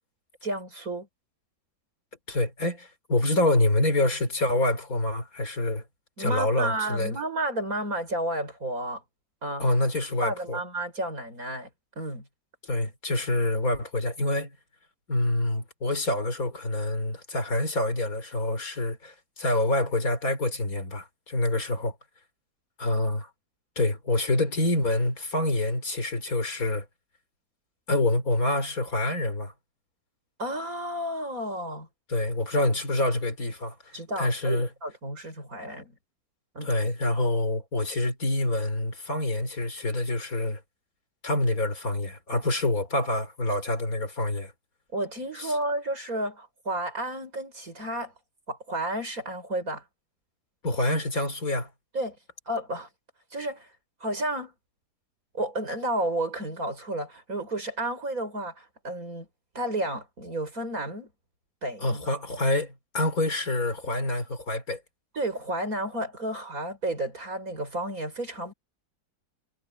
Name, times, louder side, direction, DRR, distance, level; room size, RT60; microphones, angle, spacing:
voice 1, 0.4-1.1 6.2-9.0 9.4-9.6 10.2-11.7 12.0-12.3 30.4-31.9 33.9-35.9 36.5-36.7 44.9-48.1 48.5-49.8 51.9-52.2 52.5-52.9 53.3-53.7 54.0-54.5 55.3-59.3 59.5-61.1 61.6-62.0 65.1-68.5, right 1 dB, 55° right, 6.1 m, -32 dB
voice 2, 2.3-5.8 6.2-7.2 9.6-10.6 12.6-14.6 15.1-22.0 22.8-23.3 23.8-26.9 27.9-29.5 32.1-34.7 36.6-40.6 41.2-44.5 45.4-45.5 50.6-51.7 61.8-64.8, left 1 dB, 55° left, 3.8 m, -26 dB
omnidirectional pair, 1.8 m